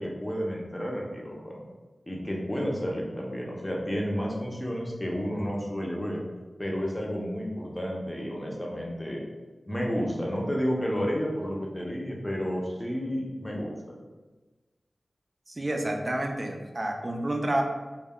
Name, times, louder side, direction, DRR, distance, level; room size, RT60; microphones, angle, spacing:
voice 1, 0.0-1.6 2.1-6.2 6.6-9.2 9.7-14.0, equal, 15° left, -2 dB, 0.6 m, -31 dB
voice 2, 15.5-17.6, right 1 dB, 40° right, 3 dB, 0.4 m, -29 dB
2.2 x 2.1 x 3.6 m, 1.2 s
cardioid pair, 50°, 0 cm